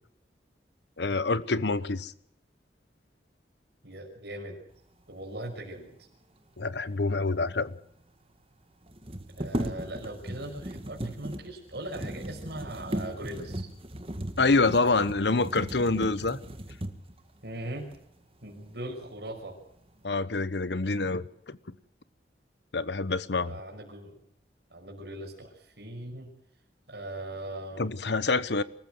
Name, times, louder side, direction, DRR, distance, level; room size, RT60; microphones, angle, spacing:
voice 1, 1.0-2.1 6.6-7.7 14.4-16.4 20.0-21.7 22.7-23.5 27.8-28.6, left 3 dB, 75° left, 1.0 m, -26 dB
voice 2, 3.8-4.6 5.1-6.0 9.4-13.7 17.4-17.9 18.4-19.6 23.4-24.2 24.7-26.3 26.9-27.9, right 1 dB, 70° right, 5.7 m, -40 dB
sound 1, 7.4-7.5 7.7-7.8 8.9-17.2 17.9-18.0 18.5-19.1 19.5-20.0, right 1 dB, 30° right, 1.8 m, -37 dB
25.0 x 14.5 x 7.8 m
head